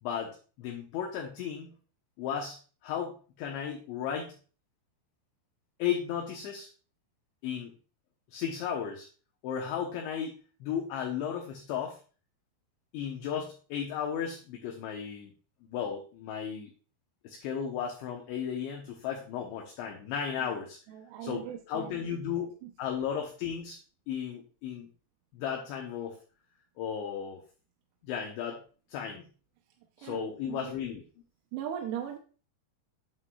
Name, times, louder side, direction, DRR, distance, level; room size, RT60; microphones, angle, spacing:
voice 1, 0.0-1.7 2.2-2.6 2.8-4.3 5.8-6.7 7.4-7.7 8.3-9.1 9.4-12.0 12.9-15.3 15.7-16.7 17.2-20.8 21.2-23.8 24.1-24.9 25.3-26.2 26.8-27.4 28.0-28.6 28.9-29.3 30.0-31.0, left 8 dB, 75° left, 1 dB, 3.0 m, -35 dB
voice 2, 20.9-22.2 22.6-22.7 30.0-30.8 31.5-32.2, right 10 dB, 90° right, 2 dB, 3.6 m, -39 dB
9.5 x 8.6 x 2.4 m, 0.38 s
omnidirectional pair, 6.0 m